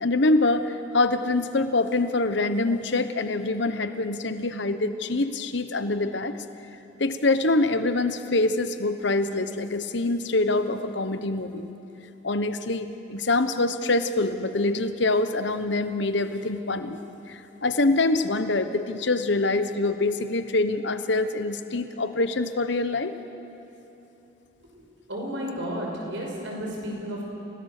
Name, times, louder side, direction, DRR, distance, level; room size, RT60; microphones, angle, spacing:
voice 1, 0.0-6.3 7.0-11.7 12.2-17.0 17.3-23.1, left 2 dB, 65° left, 10 dB, 1.0 m, -25 dB
voice 2, 25.1-27.2, equal, 75° right, -2 dB, 5.8 m, -32 dB
29.0 x 18.0 x 6.6 m, 3.0 s
head